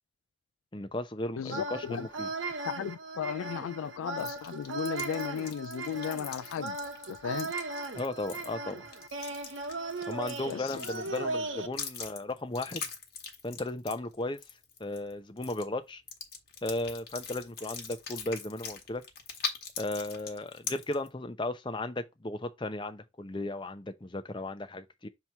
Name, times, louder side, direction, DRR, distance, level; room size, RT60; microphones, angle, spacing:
voice 1, 0.7-2.3 7.9-8.9 10.1-12.9 13.4-14.4 14.8-16.0 16.6-19.0 19.8-25.1, left 2 dB, 25° left, 0.7 m, -35 dB
voice 2, 1.4-2.1 2.6-6.8 7.1-7.5 10.5-10.8, left 8 dB, 80° left, 0.3 m, -35 dB
sound 1, 1.5-11.7, right 2 dB, 65° right, 1.0 m, -37 dB
sound 2, 4.2-11.3 11.7-15.1 15.4-15.6 16.1-21.1, left 6 dB, 50° left, 1.4 m, -41 dB
6.8 x 3.0 x 4.5 m
head